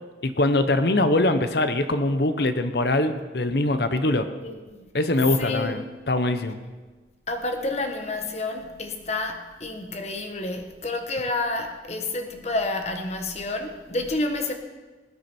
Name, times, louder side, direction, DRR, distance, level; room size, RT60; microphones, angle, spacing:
voice 1, 0.2-4.3 4.9-6.6, left 2 dB, 60° left, 0.9 m, -23 dB
voice 2, 4.3-4.8 5.4-5.8 7.3-14.5, left 2 dB, 35° left, 1.3 m, -29 dB
20.5 x 9.5 x 4.5 m
head